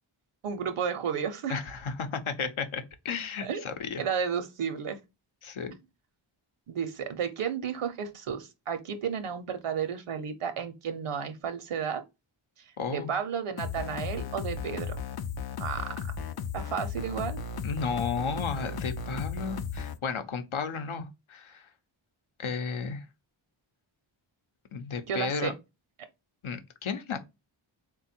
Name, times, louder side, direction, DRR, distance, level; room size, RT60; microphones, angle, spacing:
voice 1, 0.4-1.6 3.4-3.6 4.0-5.0 5.7-5.8 6.7-12.0 12.9-15.0 15.6-15.9 16.5-17.4 25.1-25.5, right 7 dB, 80° right, 0.7 m, -32 dB
voice 2, 1.5-4.0 5.4-5.7 12.8-13.1 17.6-21.6 22.4-23.0 24.7-25.5 26.4-27.2, left 5 dB, 75° left, 0.8 m, -33 dB
sound 1, 13.6-20.0, left 5 dB, 50° left, 0.5 m, -35 dB
3.6 x 2.2 x 4.2 m
wide cardioid pair, 75°, 50 cm